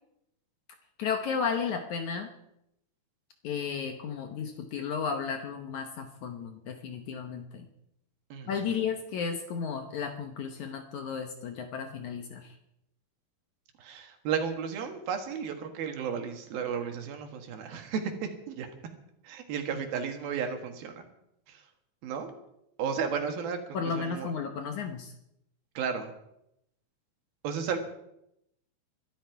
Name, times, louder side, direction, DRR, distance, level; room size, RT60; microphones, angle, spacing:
voice 1, 1.0-2.3 3.4-7.7 8.5-12.6 23.7-25.1, left 6 dB, 65° left, 5 dB, 2.1 m, -33 dB
voice 2, 8.3-8.8 13.8-18.7 19.2-21.1 21.5-21.6 22.0-22.4 22.8-24.3 25.7-26.1 27.4-27.8, right 6 dB, 75° right, 5 dB, 3.5 m, -34 dB
23.0 x 12.5 x 4.7 m, 0.81 s
omnidirectional pair, 4.4 m